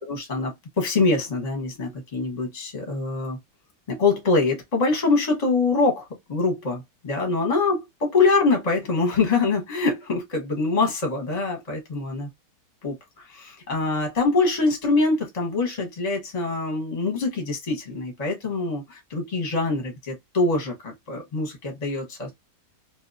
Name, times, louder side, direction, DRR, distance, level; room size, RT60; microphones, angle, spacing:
voice 1, 0.0-3.4 3.9-12.3 12.8-22.3, left 3 dB, 30° left, 0.9 m, -24 dB
2.9 x 2.4 x 2.5 m
omnidirectional pair, 1.9 m